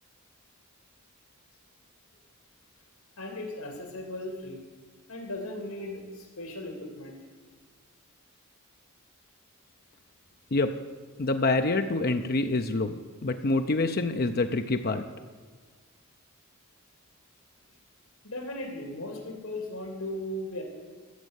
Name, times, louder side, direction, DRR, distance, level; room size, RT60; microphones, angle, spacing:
voice 1, 3.2-4.6 5.1-7.2 18.2-20.6, left 1 dB, 85° left, 3 dB, 3.0 m, -37 dB
voice 2, 11.2-15.0, left 2 dB, 45° left, 7 dB, 0.6 m, -26 dB
14.5 x 7.5 x 8.1 m, 1.5 s
head